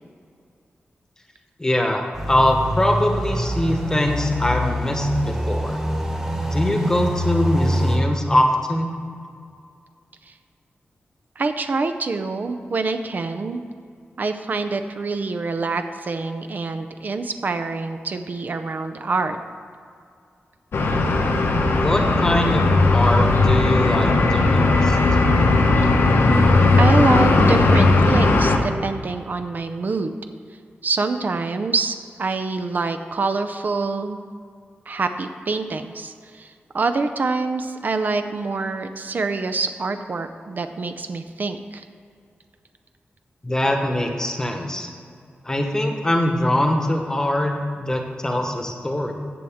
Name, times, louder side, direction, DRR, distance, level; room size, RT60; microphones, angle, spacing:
voice 1, 1.6-5.8 6.5-8.9 21.8-25.0 43.4-44.9 45.4-49.1, left 1 dB, 15° left, 3 dB, 1.1 m, -22 dB
sound 1, 2.1-8.0, equal, 15° right, 1.4 m, -25 dB
voice 2, 11.4-13.6 14.2-19.4 26.8-30.2 30.8-34.2 34.9-41.8, right 3 dB, 50° right, 8 dB, 0.5 m, -26 dB
sound 2, 20.7-28.6, left 2 dB, 80° left, 1.0 m, -17 dB
14.5 x 7.7 x 3.6 m, 2.3 s
wide cardioid pair, 150°, 4 cm